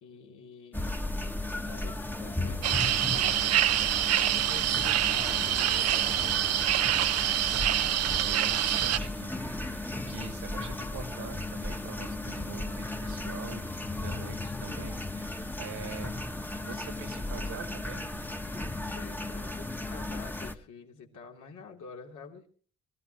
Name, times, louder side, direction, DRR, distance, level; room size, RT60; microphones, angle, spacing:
voice 1, 0.0-0.9 1.7-3.9 4.2-7.0 8.9-9.2 15.6-16.0 18.9-22.5, left 5 dB, 75° left, 0 dB, 3.4 m, -48 dB
sound 1, 0.7-20.6, left 2 dB, 5° left, 1.2 m, -35 dB
sound 2, 2.6-9.0, right 11 dB, 55° right, 0.6 m, -26 dB
voice 2, 7.4-16.2 16.6-18.0, right 6 dB, 90° right, 5 dB, 2.7 m, -45 dB
23.5 x 15.0 x 3.0 m, 0.42 s
cardioid pair, 90°, 30 cm